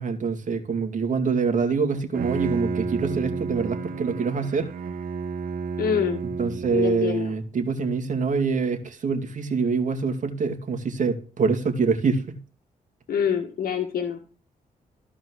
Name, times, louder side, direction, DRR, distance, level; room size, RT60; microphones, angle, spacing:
voice 1, 0.0-4.7 6.4-12.4, right 5 dB, 55° right, 2.3 m, -25 dB
Bowed string instrument, 1.9-7.0, right 5 dB, 75° right, 1.4 m, -31 dB
voice 2, 5.8-6.2 6.7-7.3 13.1-14.2, left 8 dB, 80° left, 1.7 m, -25 dB
14.5 x 4.9 x 6.2 m
cardioid pair, 90°, 15 cm